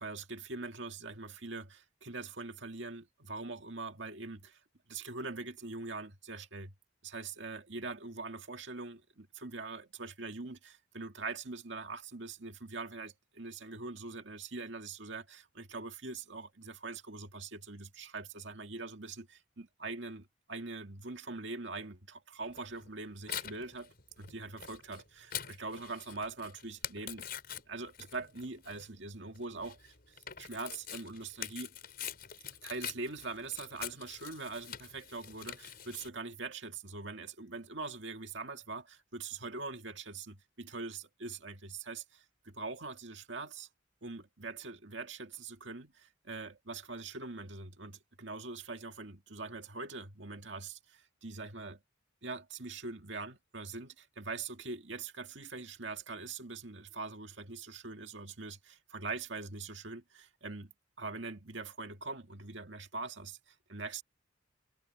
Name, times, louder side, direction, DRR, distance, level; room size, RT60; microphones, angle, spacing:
voice 1, 0.0-4.6 4.9-6.7 7.0-27.3 27.7-31.7 32.6-43.7 44.0-51.8 52.2-60.7 61.0-64.0, right 3 dB, 70° right, 2.1 m, -43 dB
Tearing, 22.5-36.1, left 10 dB, 50° left, 5.6 m, -45 dB
head